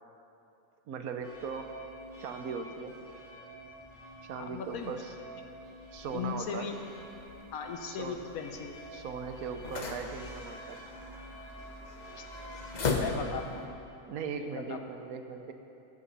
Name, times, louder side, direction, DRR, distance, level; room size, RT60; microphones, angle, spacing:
voice 1, 0.9-1.8 2.2-3.0 4.2-5.1 5.9-6.7 7.8-8.2 8.9-10.8 14.1-15.5, right 6 dB, 80° right, 6 dB, 1.2 m, -39 dB
sound 1, 1.2-13.6, right 1 dB, 10° left, 2.8 m, -48 dB
voice 2, 4.4-4.9 6.1-6.7 7.5-8.7 12.2-12.3 12.9-13.7 14.3-14.8, left 6 dB, 75° left, 5 dB, 1.3 m, -38 dB
sound 2, 6.0-13.7, left 3 dB, 40° left, 0.7 m, -39 dB
11.0 x 8.0 x 5.4 m, 2.8 s
omnidirectional pair, 1.5 m